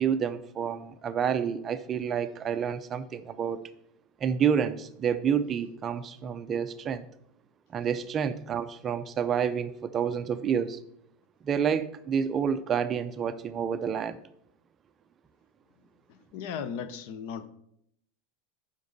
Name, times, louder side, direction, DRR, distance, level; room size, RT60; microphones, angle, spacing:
voice 1, 0.0-3.6 4.2-7.1 7.7-10.8 11.4-14.2, right 7 dB, 20° right, 0.4 m, -29 dB
voice 2, 16.1-17.5, left 7 dB, 55° left, 0.7 m, -37 dB
11.5 x 5.2 x 4.0 m
supercardioid pair, 160°, 0 cm